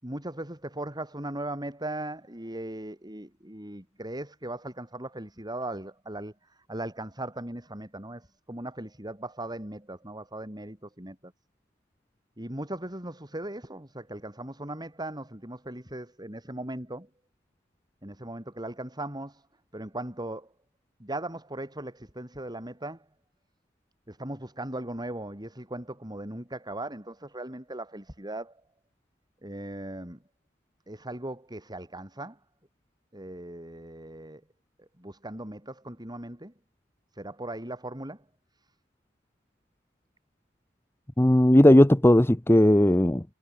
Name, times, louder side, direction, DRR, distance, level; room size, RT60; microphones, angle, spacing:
voice 1, 0.0-11.3 12.4-17.1 18.0-19.5 19.7-20.5 21.0-23.0 24.1-28.6 29.4-30.2 30.9-32.4 33.1-34.4 34.8-36.5 37.1-38.2, right 1 dB, 20° right, 6.2 m, -38 dB
voice 2, 41.2-43.2, left 1 dB, 10° left, 0.9 m, -17 dB
head